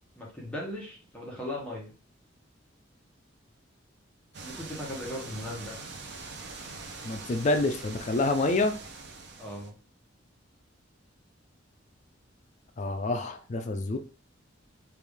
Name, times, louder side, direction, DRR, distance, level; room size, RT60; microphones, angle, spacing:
voice 1, 0.2-1.9 4.4-5.8 9.4-9.7, left 1 dB, 5° left, -5 dB, 0.9 m, -38 dB
sound 1, 4.3-9.7, right 3 dB, 55° right, 0.6 m, -43 dB
voice 2, 7.0-8.7 12.8-14.0, left 2 dB, 40° left, 8 dB, 0.4 m, -27 dB
3.4 x 2.6 x 3.4 m, 0.36 s
head